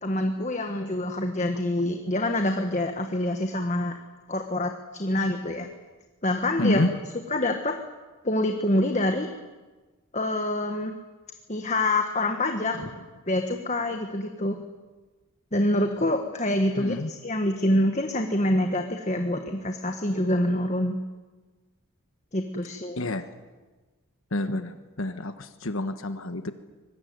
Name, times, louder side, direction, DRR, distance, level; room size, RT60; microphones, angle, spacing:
voice 1, 0.0-4.0 4.3-5.7 6.2-6.8 7.3-7.7 8.2-9.3 10.1-11.0 11.5-12.9 13.3-14.6 15.5-21.0 22.3-23.0, left 1 dB, 30° left, 5 dB, 1.6 m, -26 dB
voice 2, 6.6-7.0 12.7-12.9 16.8-17.1 23.0-23.3 24.3-26.5, left 1 dB, 70° left, 9 dB, 1.3 m, -28 dB
25.0 x 20.5 x 9.5 m, 1.3 s
head